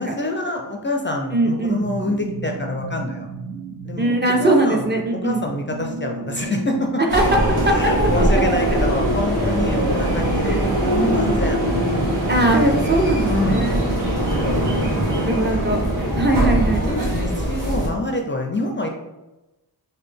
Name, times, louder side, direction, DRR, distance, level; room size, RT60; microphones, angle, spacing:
voice 1, 0.0-3.3 3.8-7.0 7.7-11.6 11.9-12.1 13.3-13.7 14.1-14.6 15.2-15.8 16.1-16.5 16.8-18.9, left 2 dB, 30° left, 2 dB, 0.4 m, -26 dB
voice 2, 1.3-1.8 4.0-5.4 7.0-7.2 7.5-8.2 10.5-10.6 12.3-13.8 14.8-15.8 16.1-16.8, right 2 dB, 25° right, 2 dB, 0.5 m, -20 dB
sound 1, 1.8-17.3, right 4 dB, 80° right, 0.7 m, -34 dB
sound 2, 7.1-17.9, right 1 dB, 55° right, 1.4 m, -21 dB
3.8 x 2.1 x 3.4 m, 1.0 s
wide cardioid pair, 85°, 39 cm